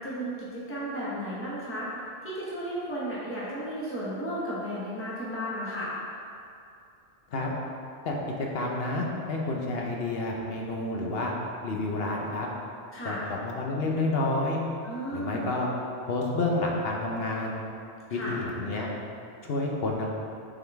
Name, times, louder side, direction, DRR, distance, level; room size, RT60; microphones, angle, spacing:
voice 1, 0.0-1.9 2.2-5.9 12.9-13.2 14.8-15.5 18.1-18.3, equal, 10° left, -8 dB, 1.2 m, -34 dB
voice 2, 8.0-11.3 11.6-12.5 13.0-14.6 15.1-15.7 16.0-17.6 18.1-18.9 19.4-20.1, left 2 dB, 65° left, -1 dB, 1.0 m, -29 dB
7.5 x 3.9 x 3.5 m, 2.5 s
omnidirectional pair, 1.1 m